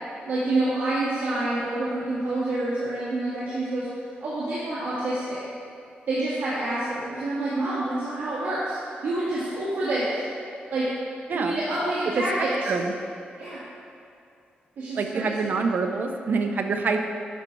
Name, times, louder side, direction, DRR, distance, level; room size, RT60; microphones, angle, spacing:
voice 1, 0.2-3.9 4.2-5.4 6.1-10.1 10.7-10.9 11.3-12.7 13.4-13.6 14.8-15.6, right 2 dB, 75° right, -9 dB, 1.8 m, -27 dB
voice 2, 15.0-17.1, right 4 dB, 60° right, 4 dB, 0.8 m, -26 dB
10.5 x 5.8 x 4.7 m, 2.5 s
cardioid pair, 115°, 3 cm